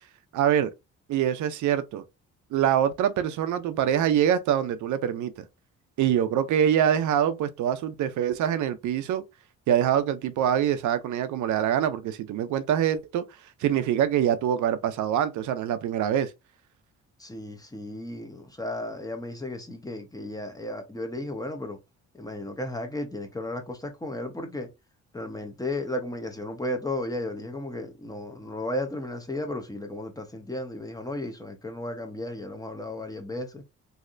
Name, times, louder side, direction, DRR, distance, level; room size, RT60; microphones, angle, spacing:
voice 1, 0.3-0.7 1.1-2.0 2.5-5.3 6.0-9.2 9.7-13.2 13.6-16.3, right 10 dB, 75° right, 0.6 m, -24 dB
voice 2, 17.2-21.8 22.1-24.7 25.1-33.6, left 1 dB, 10° left, 0.9 m, -34 dB
3.2 x 2.7 x 2.5 m
cardioid pair, 90°, 30 cm